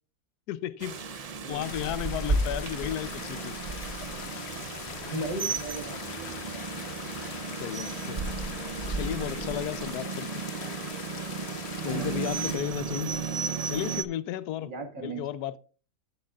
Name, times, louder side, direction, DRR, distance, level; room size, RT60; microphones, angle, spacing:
voice 1, 0.5-3.6 7.6-8.2 9.0-10.4 11.8-13.1 13.7-14.7 15.0-15.6, left 12 dB, 85° left, 1.2 m, -34 dB
Rain, 0.8-14.0, right 4 dB, 75° right, 0.3 m, -34 dB
voice 2, 1.3-1.7 5.0-6.0 6.5-6.9 11.8-12.7 14.6-15.3, right 2 dB, 35° right, 1.6 m, -38 dB
sound 1, 1.6-12.6, left 7 dB, 50° left, 1.0 m, -41 dB
sound 2, 4.0-9.7, right 3 dB, 55° right, 3.4 m, -54 dB
14.0 x 7.8 x 2.3 m
omnidirectional pair, 1.6 m